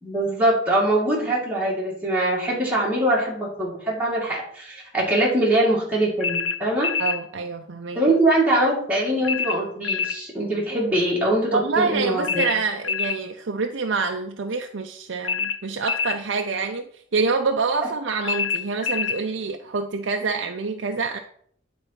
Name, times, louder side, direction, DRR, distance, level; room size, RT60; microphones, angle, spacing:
voice 1, 0.0-6.9 8.0-12.5, right 1 dB, 10° right, -6 dB, 2.0 m, -22 dB
sound 1, 6.2-7.2 9.2-10.2 12.2-13.2 15.2-16.2 18.2-19.2, left 6 dB, 85° left, 0.7 m, -26 dB
voice 2, 7.0-8.0 11.5-21.2, right 4 dB, 70° right, 4 dB, 0.6 m, -26 dB
9.9 x 4.0 x 5.8 m, 0.62 s
head